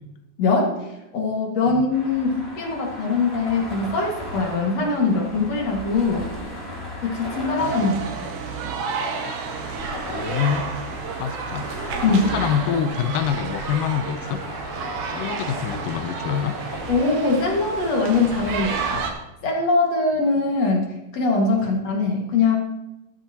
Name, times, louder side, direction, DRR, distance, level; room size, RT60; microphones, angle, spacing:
voice 1, 0.4-0.9 1.1-6.3 7.0-8.1 12.0-12.3 16.9-19.0 19.4-22.6, left 3 dB, 50° left, -1 dB, 2.6 m, -22 dB
sound 1, 1.9-19.1, equal, 5° left, 4.5 m, -37 dB
sound 2, 7.6-19.1, right 5 dB, 80° right, 3.4 m, -31 dB
voice 2, 10.1-10.7 11.2-11.7 12.1-14.4 15.1-16.6, left 9 dB, 75° left, 11 dB, 2.1 m, -26 dB
13.0 x 13.0 x 2.9 m, 0.92 s
omnidirectional pair, 4.2 m